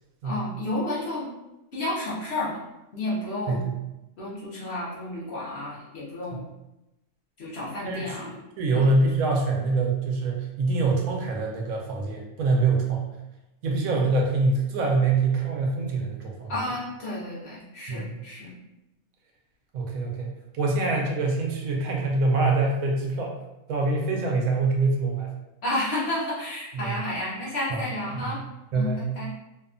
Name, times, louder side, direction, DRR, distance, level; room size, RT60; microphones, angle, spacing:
voice 1, 0.2-1.3 1.7-2.6 2.9-3.6 4.2-6.5 7.4-8.3 8.7-8.9 16.5-18.5 25.6-28.4 28.7-29.3, left 1 dB, 55° left, -7 dB, 0.8 m, -31 dB
voice 2, 7.8-8.3 8.6-13.1 13.6-16.5 17.9-18.2 19.7-23.4 23.7-25.3 26.7-27.0 27.7-27.8 28.1-28.2 28.7-29.1, right 3 dB, 75° right, 0 dB, 1.0 m, -25 dB
2.7 x 2.2 x 2.4 m, 0.94 s
omnidirectional pair, 1.5 m